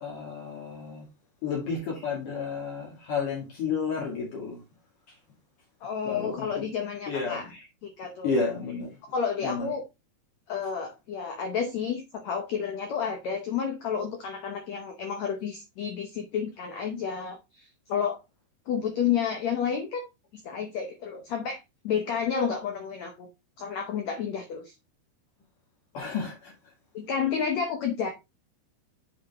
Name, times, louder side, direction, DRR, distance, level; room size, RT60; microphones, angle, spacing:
voice 1, 0.0-1.1 1.4-4.6 6.1-6.5 7.1-7.5 8.2-8.9 9.4-9.7 25.9-26.5, left 5 dB, 55° left, 3.4 m, -31 dB
voice 2, 5.8-8.3 9.1-9.8 10.5-18.2 18.7-20.0 20.3-23.3 23.6-24.7 26.9-28.1, left 7 dB, 85° left, 1.5 m, -31 dB
8.0 x 5.0 x 3.5 m
omnidirectional pair, 4.7 m